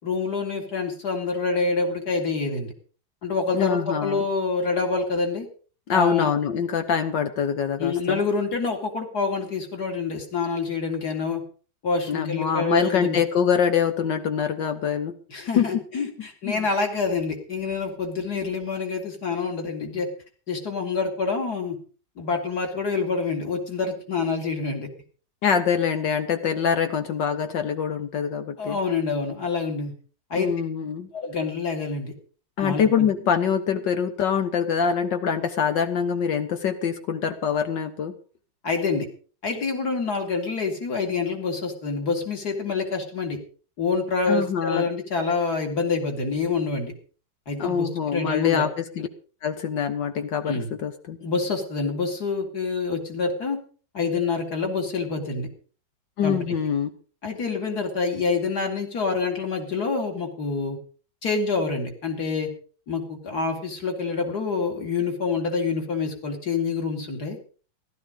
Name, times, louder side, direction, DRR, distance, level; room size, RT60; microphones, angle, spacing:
voice 1, 0.0-2.7 3.2-5.5 5.9-6.3 7.8-11.4 11.8-13.2 15.3-20.1 20.5-21.8 22.2-24.9 28.6-29.9 30.3-30.5 31.1-32.1 32.6-33.1 38.6-39.1 39.4-43.4 43.8-46.9 47.5-48.7 50.5-50.7 51.2-53.6 53.9-55.5 56.2-56.4 57.2-60.8 61.2-62.5 62.9-67.4, left 4 dB, 55° left, 3 dB, 3.6 m, -27 dB
voice 2, 3.5-4.3 5.9-8.2 12.1-15.1 15.6-15.7 16.5-16.7 25.4-28.8 30.3-31.1 32.6-38.1 44.3-44.9 47.6-49.1 49.4-51.2 56.2-56.9, left 7 dB, 70° left, 7 dB, 1.7 m, -24 dB
15.0 x 13.0 x 5.2 m, 0.40 s
omnidirectional pair, 2.1 m